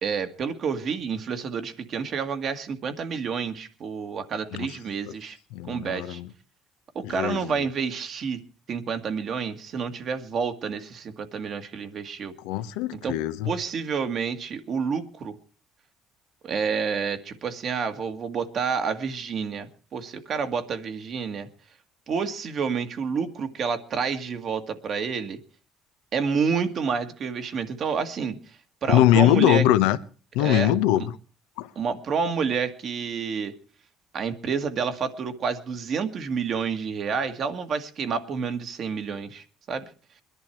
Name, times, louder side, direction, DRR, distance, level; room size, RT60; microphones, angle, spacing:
voice 1, 0.0-5.4 5.7-6.2 7.0-8.4 8.7-12.3 13.0-13.2 13.5-15.4 16.4-21.5 22.1-25.4 26.1-28.4 28.8-29.6 30.4-31.1 31.8-33.5 34.1-39.9, right 6 dB, 55° right, 1.9 m, -29 dB
voice 2, 5.5-6.3 7.0-7.4 12.4-13.5 28.9-30.0 30.3-31.2 31.6-31.7, left 13 dB, 90° left, 0.9 m, -21 dB
21.5 x 11.0 x 4.6 m
supercardioid pair, 80°, 0 cm